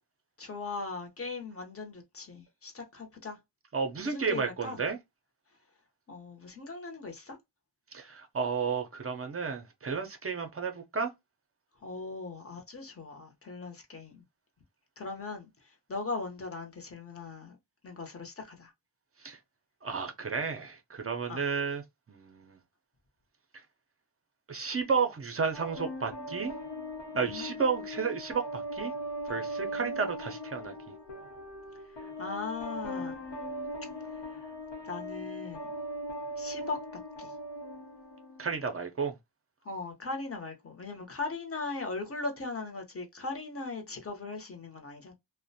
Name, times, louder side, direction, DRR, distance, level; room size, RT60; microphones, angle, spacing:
voice 1, 0.4-3.4 4.0-4.8 6.1-7.4 11.8-14.2 15.0-15.5 15.9-17.6 17.8-18.7 21.3-21.4 27.1-27.5 29.6-29.9 32.0-33.2 34.8-35.7 36.4-36.8 37.2-37.3 39.6-45.1, left 3 dB, 35° left, 0.7 m, -39 dB
voice 2, 3.7-5.0 7.9-11.1 19.2-19.4 19.8-21.8 22.1-22.6 24.5-26.5 27.1-28.9 29.3-30.7 38.4-39.2, right 5 dB, 35° right, 0.5 m, -32 dB
sound 1, 25.5-38.6, equal, 90° left, 0.8 m, -39 dB
2.4 x 2.1 x 2.6 m
wide cardioid pair, 100°, 41 cm